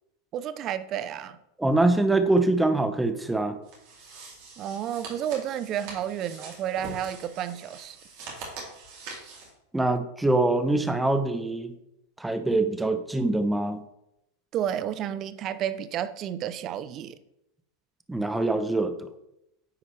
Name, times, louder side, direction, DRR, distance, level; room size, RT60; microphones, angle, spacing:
voice 1, 0.3-1.4 4.6-8.0 14.5-17.2, right 10 dB, 40° right, 13 dB, 0.5 m, -31 dB
voice 2, 1.6-3.6 9.7-11.7 12.2-13.8 18.1-19.1, right 2 dB, 10° right, 9 dB, 0.8 m, -24 dB
sound 1, 3.6-9.5, right 3 dB, 60° right, 2.5 m, -43 dB
9.5 x 4.9 x 3.3 m, 0.84 s
hypercardioid pair, 95°, 0 cm